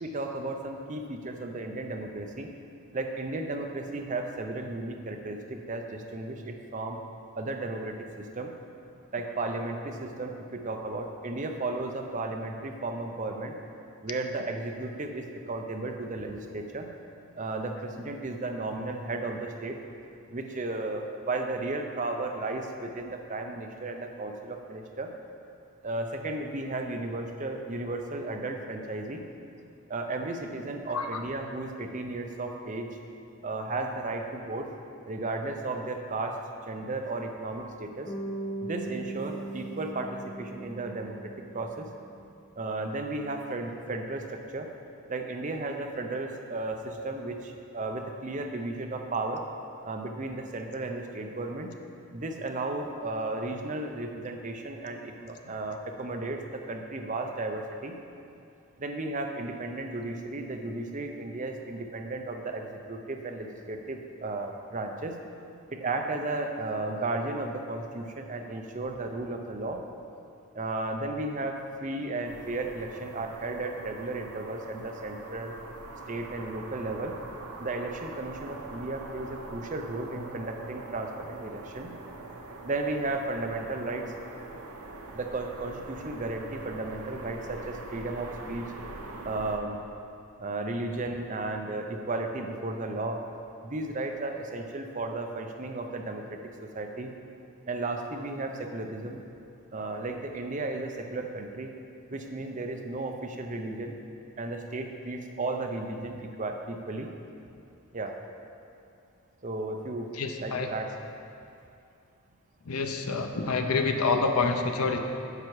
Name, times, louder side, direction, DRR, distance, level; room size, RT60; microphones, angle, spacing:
voice 1, 0.0-2.5 2.9-7.0 7.3-8.0 8.3-8.5 9.1-13.5 14.0-16.9 17.3-19.8 20.3-25.1 25.8-29.2 29.9-32.9 33.4-34.7 35.1-36.4 36.7-38.1 38.6-41.9 42.6-44.7 45.1-49.4 49.8-51.7 52.1-58.0 58.8-65.2 65.7-69.8 70.5-75.5 76.1-77.2 77.6-81.9 82.6-84.0 85.1-88.7 89.2-89.8 90.4-93.2 93.6-96.4 96.7-97.1 97.7-99.2 99.7-101.7 102.1-104.0 104.4-107.1 107.9-108.2 109.4-110.1 110.4-111.1, right 2 dB, 35° right, 4 dB, 0.6 m, -34 dB
Bass guitar, 38.1-42.2, right 2 dB, 25° left, 0.7 m, -39 dB
sound 1, 72.2-89.6, right 2 dB, 80° right, 0.8 m, -43 dB
voice 2, 110.2-110.7 112.7-115.0, left 4 dB, 80° left, 5 dB, 0.7 m, -27 dB
9.6 x 5.9 x 4.7 m, 2.6 s
head